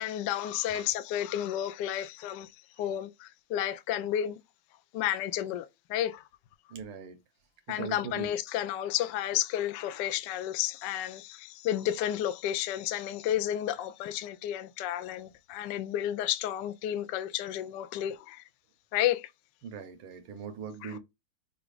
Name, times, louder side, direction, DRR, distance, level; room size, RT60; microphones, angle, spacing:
voice 1, 0.0-2.5 2.8-4.4 4.9-6.2 7.7-18.4 18.9-19.3 20.8-21.0, left 12 dB, 75° left, 1.0 m, -32 dB
voice 2, 6.7-7.2 7.7-8.3 19.6-21.0, right 6 dB, 85° right, 1.8 m, -40 dB
6.0 x 2.4 x 3.2 m
omnidirectional pair, 2.3 m